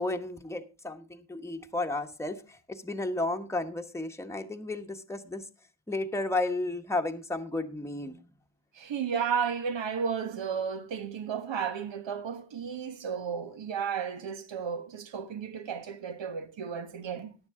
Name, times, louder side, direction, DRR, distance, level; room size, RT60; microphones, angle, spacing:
voice 1, 0.0-2.4 2.7-5.4 5.9-8.2, left 2 dB, 5° left, 1.1 m, -33 dB
voice 2, 8.7-17.4, right 7 dB, 80° right, 1.5 m, -33 dB
14.0 x 10.0 x 3.6 m
wide cardioid pair, 100°, 45 cm